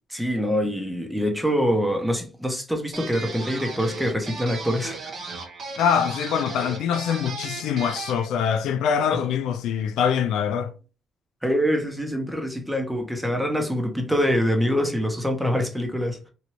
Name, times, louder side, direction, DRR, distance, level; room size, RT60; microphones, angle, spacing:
voice 1, 0.1-5.0 9.1-9.3 11.4-16.2, equal, 5° right, 0.9 m, -25 dB
sound 1, 2.9-8.3, right 3 dB, 55° right, 1.0 m, -36 dB
voice 2, 5.8-10.8, left 7 dB, 85° left, 0.3 m, -24 dB
3.0 x 2.6 x 2.9 m
cardioid pair, 90°, 0 cm